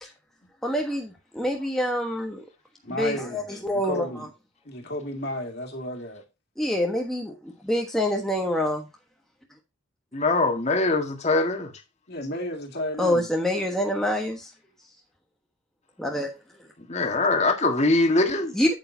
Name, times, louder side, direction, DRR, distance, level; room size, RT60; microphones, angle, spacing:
voice 1, 0.6-2.4 3.0-4.3 6.6-8.9 13.0-14.5 16.0-16.3 16.6-16.7 18.5-18.7, left 1 dB, ahead, 1.2 m, -26 dB
voice 2, 2.8-3.6 3.8-4.3 4.6-6.2 12.1-13.3, left 1 dB, 50° left, 2.2 m, -32 dB
voice 3, 10.1-11.7 16.9-18.6, left 2 dB, 30° left, 1.6 m, -22 dB
8.8 x 8.2 x 2.7 m
head